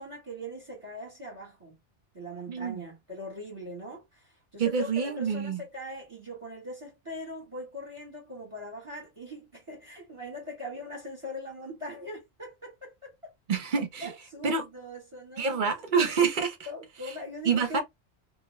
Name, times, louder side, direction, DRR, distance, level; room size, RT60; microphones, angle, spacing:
voice 1, 0.0-1.7 2.1-13.3 14.0-15.8 16.7-17.8, left 1 dB, 30° right, 1.2 m, -41 dB
voice 2, 2.5-2.8 4.6-5.6 13.5-14.1 14.4-14.6 15.4-16.6 17.5-17.8, right 6 dB, 50° right, 0.8 m, -27 dB
2.6 x 2.2 x 3.0 m
omnidirectional pair, 1.2 m